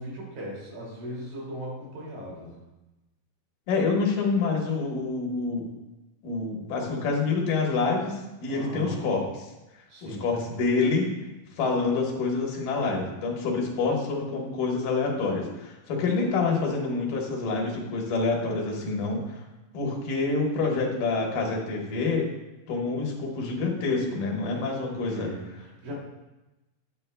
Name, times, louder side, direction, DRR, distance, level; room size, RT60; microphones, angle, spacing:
voice 1, 0.0-2.6 8.5-9.0 9.9-10.3 24.9-25.9, equal, 85° right, -4 dB, 4.3 m, -38 dB
voice 2, 3.7-5.7 6.2-9.2 10.0-11.1 11.6-19.4 19.7-22.3 22.7-25.3, left 4 dB, 75° left, -1 dB, 2.9 m, -27 dB
10.0 x 8.7 x 2.2 m, 1.0 s
omnidirectional pair, 3.9 m